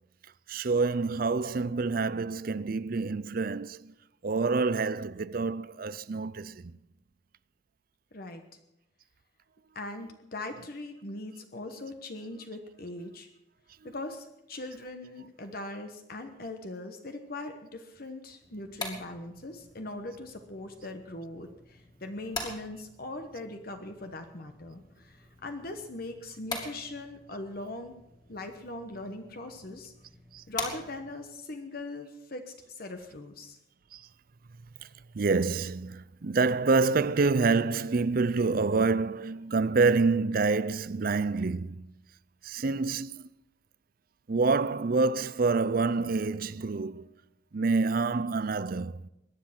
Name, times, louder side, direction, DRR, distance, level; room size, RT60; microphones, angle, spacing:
voice 1, 0.5-3.9 4.2-6.8 13.8-13.9 30.3-30.4 33.9-34.1 34.8-34.9 35.1-41.9 42.4-43.3 44.3-47.1 47.5-49.1, right 4 dB, 50° right, 0.5 m, -27 dB
voice 2, 8.1-8.4 9.7-13.3 13.8-27.9 28.3-29.9 30.5-33.6, left 2 dB, 50° left, 1.1 m, -40 dB
sound 1, 18.4-31.3, left 2 dB, 20° left, 2.5 m, -44 dB
21.5 x 10.0 x 5.9 m
head